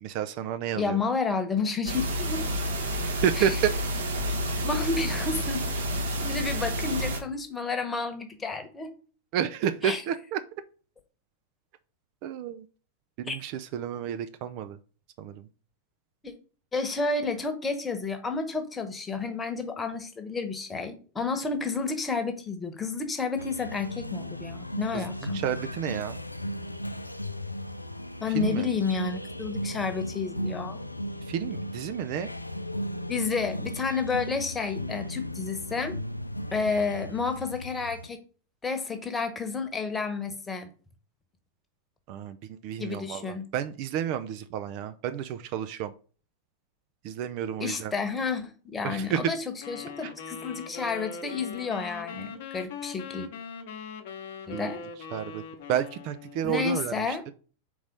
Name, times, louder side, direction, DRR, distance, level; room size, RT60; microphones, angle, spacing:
voice 1, 0.0-1.0 3.0-3.7 9.3-10.4 12.2-12.7 13.2-14.8 15.2-15.5 24.9-26.2 28.3-28.7 31.3-32.3 42.1-45.9 47.0-47.9 48.8-49.2 50.0-50.1 54.5-54.8 55.1-55.4 55.7-57.2, right 10 dB, 45° right, 0.5 m, -31 dB
voice 2, 0.8-2.4 3.4-3.5 4.6-5.7 6.2-8.9 9.8-10.0 13.3-13.4 16.2-16.3 16.7-25.4 28.2-30.8 33.1-36.0 36.5-38.2 38.6-40.7 42.8-43.5 47.6-49.4 49.7-53.3 54.5-54.8 56.4-57.2, left 4 dB, 15° left, 1.2 m, -30 dB
sound 1, 1.8-7.2, equal, 65° right, 1.3 m, -29 dB
sound 2, 23.4-38.1, equal, 85° left, 0.4 m, -36 dB
sound 3, 49.6-56.6, left 6 dB, 50° left, 1.0 m, -41 dB
4.7 x 4.1 x 5.2 m
figure-of-eight pair, 90°, 0 cm